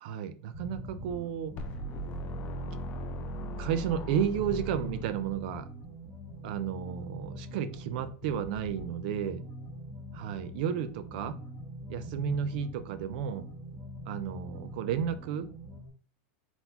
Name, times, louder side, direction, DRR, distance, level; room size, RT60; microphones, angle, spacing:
voice 1, 0.0-1.6 3.2-5.7 6.4-9.4 10.2-11.4 11.9-13.5 14.1-15.5, right 8 dB, 45° right, 12 dB, 0.5 m, -33 dB
sound 1, 0.5-15.9, equal, 10° right, 1.7 m, -43 dB
sound 2, 1.6-5.6, right 1 dB, 25° left, 0.4 m, -39 dB
4.0 x 3.9 x 2.9 m, 0.39 s
supercardioid pair, 180°, 7 cm